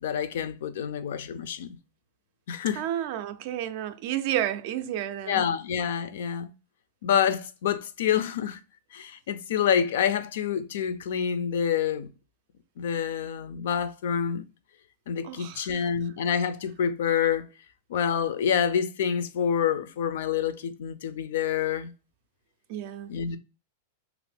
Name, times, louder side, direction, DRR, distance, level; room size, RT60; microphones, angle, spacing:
voice 1, 0.0-1.8 2.5-2.8 5.3-6.5 7.0-8.6 8.9-12.1 12.8-14.4 15.1-17.5 17.9-21.9 23.1-23.4, left 8 dB, 70° left, 0.4 m, -27 dB
voice 2, 2.8-5.4 15.2-15.7 22.7-23.1, right 12 dB, 45° right, 0.3 m, -31 dB
2.8 x 2.5 x 3.2 m
supercardioid pair, 165°, 0 cm